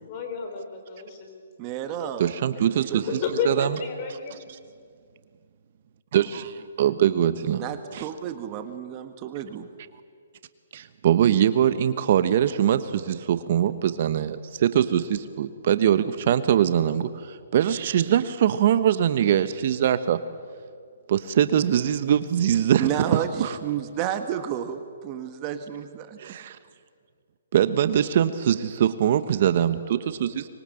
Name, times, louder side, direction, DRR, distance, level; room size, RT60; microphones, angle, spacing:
voice 1, 0.1-1.4 1.7-4.5, left 5 dB, 35° left, 5 dB, 4.7 m, -33 dB
voice 2, 1.6-2.3 2.9-3.0 7.4-9.7 22.8-26.2, right 10 dB, 30° right, 8 dB, 1.6 m, -31 dB
voice 3, 2.2-3.1 3.4-3.7 6.1-7.6 7.9-8.1 10.7-20.2 21.1-23.6 26.2-26.6 27.5-30.5, right 10 dB, 50° right, 12 dB, 1.1 m, -22 dB
24.5 x 22.5 x 7.8 m, 2.1 s
hypercardioid pair, 145°, 0 cm